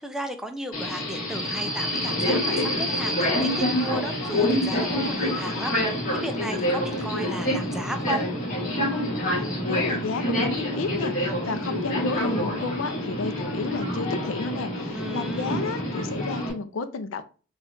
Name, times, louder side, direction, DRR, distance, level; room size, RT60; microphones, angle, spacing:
voice 1, 0.0-8.3 14.9-15.8, equal, 5° right, 0.4 m, -35 dB
Subway metro underground, 0.7-16.5, left 1 dB, 45° left, 1.4 m, -27 dB
voice 2, 9.4-17.2, left 4 dB, 75° left, 0.4 m, -32 dB
4.5 x 2.4 x 2.5 m
head